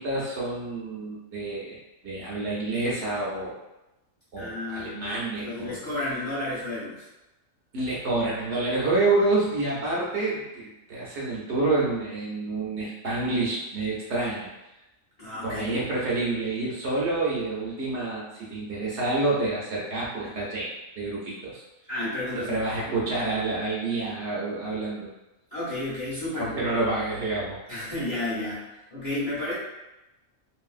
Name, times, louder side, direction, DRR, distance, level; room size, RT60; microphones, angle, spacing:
voice 1, 0.0-3.6 4.3-5.8 7.7-14.5 15.4-20.7 21.0-21.6 22.3-25.1 26.3-27.6, right 2 dB, 60° right, -5 dB, 0.9 m, -28 dB
voice 2, 4.4-7.1 15.2-15.8 21.9-22.6 22.8-22.9 25.5-26.7 27.7-29.5, left 1 dB, 30° left, -9 dB, 0.8 m, -32 dB
3.0 x 2.6 x 2.4 m, 0.98 s
omnidirectional pair, 1.4 m